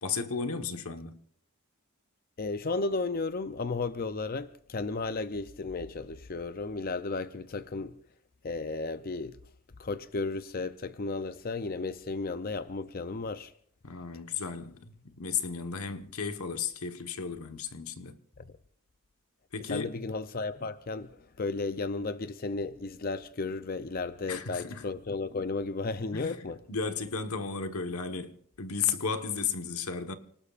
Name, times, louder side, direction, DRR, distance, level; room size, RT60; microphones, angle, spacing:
voice 1, 0.0-1.1 13.8-18.2 19.5-19.9 24.3-24.8 26.1-30.1, left 6 dB, 90° left, 1.3 m, -34 dB
voice 2, 2.4-8.0 8.4-9.4 9.8-13.5 19.7-26.6, left 3 dB, 40° left, 0.5 m, -34 dB
29.5 x 19.0 x 2.5 m
head